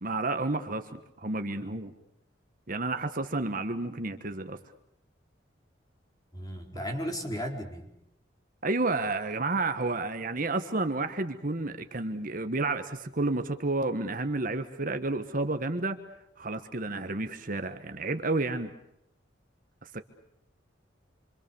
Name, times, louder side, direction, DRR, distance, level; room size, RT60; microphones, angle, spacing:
voice 1, 0.0-1.9 2.7-4.6 8.6-16.0 16.4-18.7 19.8-20.0, right 2 dB, 45° right, 8 dB, 1.4 m, -31 dB
voice 2, 6.3-7.9, equal, 20° left, 2 dB, 4.6 m, -35 dB
27.5 x 25.5 x 7.1 m, 0.81 s
head